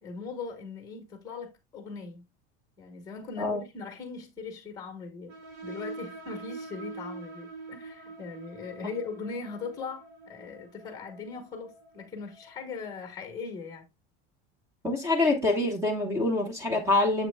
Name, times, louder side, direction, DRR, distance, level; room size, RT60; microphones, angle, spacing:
voice 1, 0.0-2.2 2.8-5.4 5.6-13.8, left 4 dB, 10° left, 1.2 m, -40 dB
sound 1, 5.3-12.6, right 3 dB, 85° right, 4.1 m, -44 dB
voice 2, 14.8-17.3, left 2 dB, 10° right, 1.0 m, -25 dB
7.4 x 6.0 x 2.2 m
supercardioid pair, 180°, 35 cm